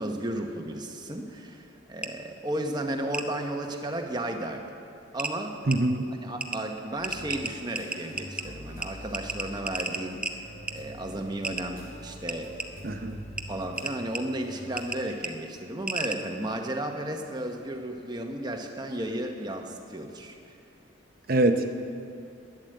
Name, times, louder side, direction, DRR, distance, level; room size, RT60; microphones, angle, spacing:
voice 1, 0.0-4.8 5.1-5.6 6.2-12.8 13.5-20.4, right 1 dB, 20° right, 3 dB, 1.0 m, -34 dB
sound 1, 2.0-2.1 3.1-3.3 4.6-4.7 5.2-5.3 5.7-5.8 6.4-6.6 7.0-8.4 8.8-8.9 9.1-10.3 10.7-10.8 11.4-11.6 12.3-12.7 13.4-13.5 13.8-14.2 14.8-15.0 15.2-15.3 15.9-16.2, right 2 dB, 5° right, 0.5 m, -32 dB
voice 2, 5.6-6.0 12.8-13.2 21.3-21.7, right 2 dB, 50° right, 6 dB, 0.7 m, -23 dB
sound 2, 7.0-15.2, equal, 85° left, 2.1 m, -45 dB
11.5 x 10.5 x 7.8 m, 2.5 s
head